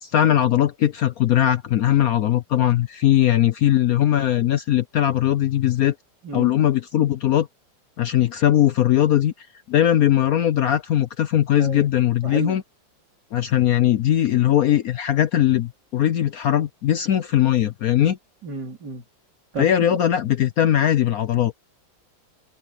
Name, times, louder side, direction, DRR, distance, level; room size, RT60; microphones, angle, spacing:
voice 1, 0.0-5.9 6.3-7.5 8.0-12.6 13.3-18.2 19.6-21.6, left 11 dB, 65° left, 0.9 m, -20 dB
voice 2, 12.2-12.5 18.4-19.0 19.5-19.8, right 4 dB, 60° right, 3.9 m, -31 dB
omnidirectional pair, 2.0 m